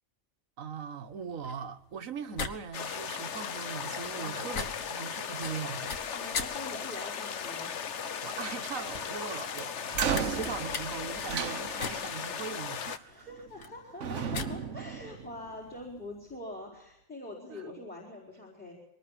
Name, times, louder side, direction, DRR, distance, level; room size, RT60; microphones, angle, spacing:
voice 1, 0.6-5.9 8.2-13.3 17.5-17.6, right 6 dB, 85° right, 1.6 m, -40 dB
sound 1, 1.1-16.4, left 5 dB, 90° left, 1.9 m, -43 dB
sound 2, 2.7-13.0, left 7 dB, 65° left, 1.3 m, -37 dB
voice 2, 6.1-7.7 13.0-18.7, left 1 dB, 5° left, 4.7 m, -44 dB
sound 3, 9.9-12.2 13.3-13.7 14.0-15.8, right 7 dB, 65° right, 1.3 m, -34 dB
23.0 x 19.0 x 7.5 m
omnidirectional pair, 1.4 m